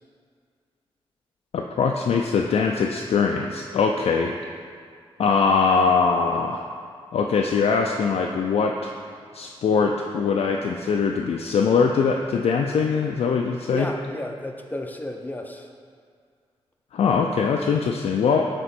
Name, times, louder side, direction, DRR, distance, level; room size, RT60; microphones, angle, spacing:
voice 1, 1.5-4.3 5.2-6.6 7.1-8.9 9.3-13.9 16.9-18.5, left 5 dB, 75° left, 1 dB, 0.4 m, -22 dB
voice 2, 13.7-15.7, left 1 dB, 15° left, 3 dB, 0.6 m, -32 dB
7.5 x 3.0 x 4.3 m, 2.1 s
cardioid pair, 70°, 11 cm